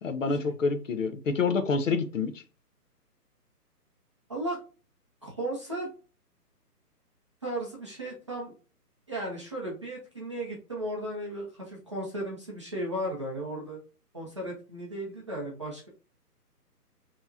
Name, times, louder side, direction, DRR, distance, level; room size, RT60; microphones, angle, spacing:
voice 1, 0.0-2.4, left 4 dB, 50° left, 0.8 m, -27 dB
voice 2, 5.2-5.9 7.4-8.6 9.1-13.8 14.1-15.9, right 1 dB, 20° right, 0.5 m, -35 dB
4.4 x 2.9 x 2.6 m
hypercardioid pair, 150°, 48 cm